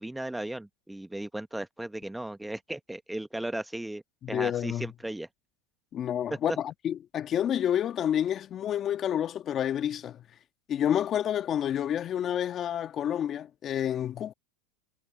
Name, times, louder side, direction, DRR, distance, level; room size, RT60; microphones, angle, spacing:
voice 1, 0.0-4.0 4.3-5.3, right 1 dB, 5° right, 0.9 m, -36 dB
voice 2, 4.2-4.9 5.9-10.2 10.7-14.3, left 10 dB, 35° left, 1.5 m, -29 dB
supercardioid pair, 115°, 0 cm